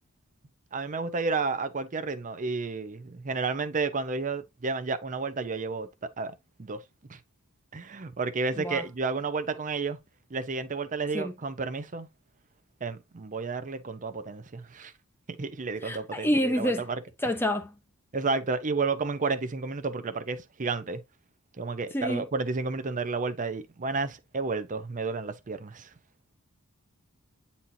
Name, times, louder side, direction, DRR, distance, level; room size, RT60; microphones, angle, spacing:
voice 1, 0.7-5.9 6.2-6.3 6.6-6.8 7.1-7.2 7.7-10.0 10.3-12.1 12.8-14.9 15.4-16.7 18.1-21.0 21.6-25.9, right 4 dB, 35° right, 0.6 m, -31 dB
voice 2, 15.8-16.9 17.2-17.7 21.9-22.2, equal, 10° left, 0.8 m, -28 dB
8.9 x 4.2 x 2.7 m
head